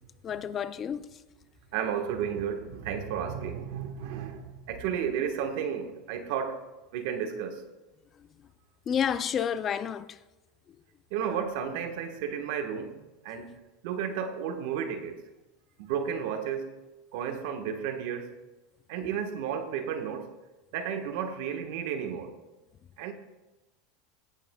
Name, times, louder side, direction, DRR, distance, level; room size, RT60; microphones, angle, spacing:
voice 1, 0.2-1.0 8.9-10.1, left 8 dB, 30° left, 0.4 m, -29 dB
voice 2, 1.7-6.7 6.9-7.6 11.1-13.0 13.2-13.6 13.8-15.2 15.8-16.8 17.1-18.3 18.9-20.3 20.7-22.4 23.0-23.1, right 8 dB, 70° right, 1.3 m, -32 dB
17.0 x 8.9 x 2.3 m
supercardioid pair, 130°, 0 cm